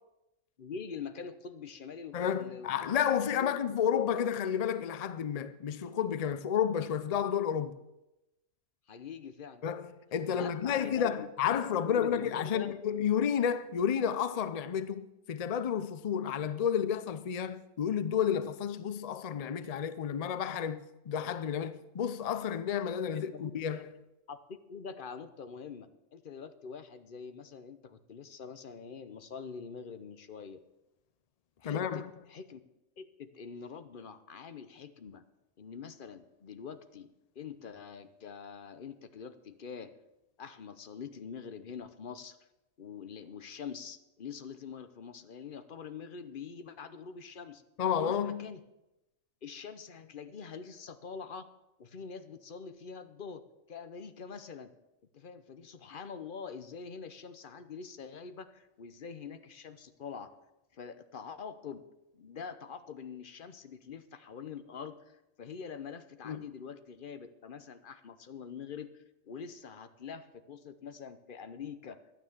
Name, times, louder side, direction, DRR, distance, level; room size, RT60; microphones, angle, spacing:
voice 1, 0.6-3.5 4.1-4.3 8.9-9.6 10.3-12.7 23.1-23.6 24.3-30.6 31.6-32.6 33.0-35.2 35.6-39.9 40.4-42.4 42.8-47.6 48.0-48.6 49.4-51.5 51.8-53.4 53.7-54.7 55.1-60.3 60.7-61.8 62.1-72.0, left 6 dB, 45° left, 0.9 m, -45 dB
voice 2, 2.1-7.7 9.6-23.9 31.6-32.1 47.8-48.5 66.3-66.4, left 8 dB, 70° left, 0.3 m, -31 dB
12.0 x 9.5 x 7.2 m
omnidirectional pair, 1.4 m